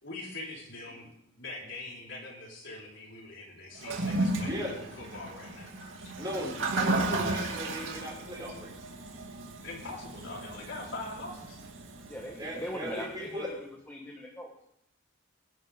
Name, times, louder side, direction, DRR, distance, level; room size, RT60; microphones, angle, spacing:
voice 1, 0.0-5.7 6.0-6.1 9.6-11.6, left 2 dB, 70° left, -3 dB, 4.5 m, -43 dB
Toilet flush, 3.8-13.0, right 2 dB, 70° right, 2.3 m, -34 dB
voice 2, 4.2-5.5 6.2-8.9 12.4-13.5, equal, 20° right, -4 dB, 5.9 m, -38 dB
voice 3, 12.0-14.5, equal, 10° left, 0 dB, 1.5 m, -40 dB
21.5 x 11.0 x 3.7 m, 0.76 s
head